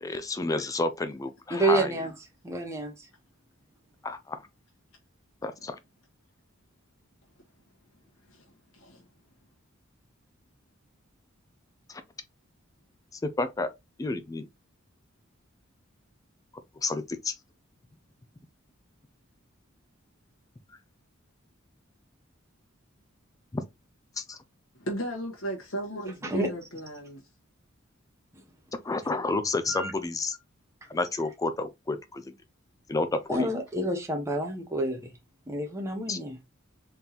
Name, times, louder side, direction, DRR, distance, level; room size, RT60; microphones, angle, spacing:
voice 1, 0.0-1.9 4.0-4.4 5.4-5.8 11.9-12.0 13.1-13.7 14.0-14.5 16.8-17.3 23.5-23.6 24.2-24.4 28.8-30.4 30.9-32.3 32.9-33.5 36.1-36.2, left 3 dB, 15° left, 0.4 m, -30 dB
voice 2, 1.5-2.1 2.4-3.1 26.2-26.5 28.3-28.4 29.7-29.9 33.3-35.1 35.5-36.4, right 2 dB, 15° right, 0.8 m, -29 dB
voice 3, 8.3-9.0 24.8-27.2, right 1 dB, 75° left, 1.2 m, -36 dB
4.0 x 3.6 x 2.9 m
head